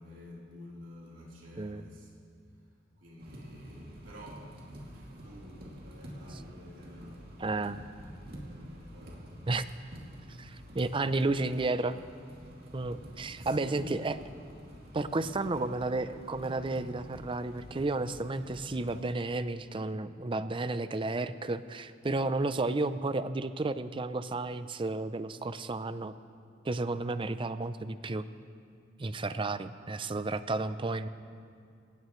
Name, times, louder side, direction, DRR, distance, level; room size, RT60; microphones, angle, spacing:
voice 1, 0.0-2.2 3.0-7.4 8.3-9.4 11.0-11.4 13.4-14.2 14.8-14.9 15.4-15.6, equal, 75° right, -5 dB, 3.8 m, -50 dB
sound 1, 3.2-19.1, equal, 55° right, 2.6 m, -48 dB
voice 2, 7.4-7.8 9.5-9.7 10.3-12.0 12.7-14.2 14.9-26.1 26.6-28.2 29.0-31.1, right 2 dB, 25° right, 12 dB, 0.5 m, -32 dB
23.5 x 18.5 x 3.2 m, 2.4 s
head